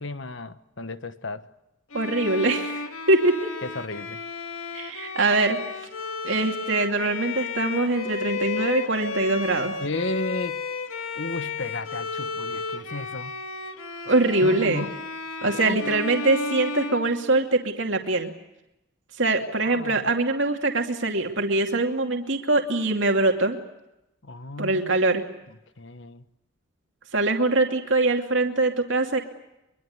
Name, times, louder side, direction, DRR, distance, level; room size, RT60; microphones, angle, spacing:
voice 1, 0.0-1.5 3.6-4.2 9.8-10.6 11.2-13.3 14.4-14.9 15.6-15.8 19.6-20.1 24.2-25.0 25.8-26.2, left 2 dB, 60° left, 12 dB, 1.3 m, -33 dB
Bowed string instrument, 1.9-17.8, left 4 dB, 85° left, 2.3 m, -33 dB
voice 2, 1.9-3.5 4.7-5.6 6.2-9.7 14.1-14.9 15.4-18.3 19.2-23.6 24.6-25.2 27.1-29.2, right 2 dB, 65° right, 3 dB, 2.6 m, -23 dB
24.0 x 23.5 x 9.5 m, 0.90 s
head